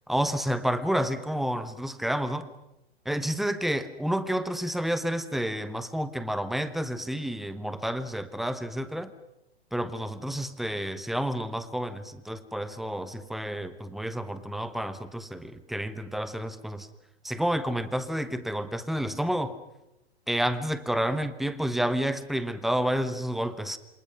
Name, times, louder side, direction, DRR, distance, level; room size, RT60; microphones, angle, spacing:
voice 1, 0.1-2.5 3.0-9.1 9.7-16.9 17.2-19.6 20.3-23.8, equal, ahead, 14 dB, 1.0 m, -30 dB
27.5 x 27.0 x 6.2 m, 0.92 s
figure-of-eight pair, 105°, 33 cm